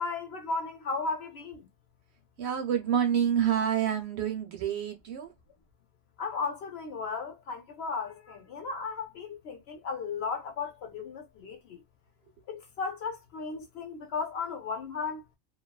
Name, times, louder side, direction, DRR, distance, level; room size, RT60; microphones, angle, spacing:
voice 1, 0.0-1.7 6.2-11.8 12.5-15.2, left 4 dB, 60° left, 0.8 m, -35 dB
voice 2, 2.4-5.3, right 9 dB, 65° right, 0.7 m, -28 dB
2.6 x 2.3 x 2.2 m
omnidirectional pair, 1.3 m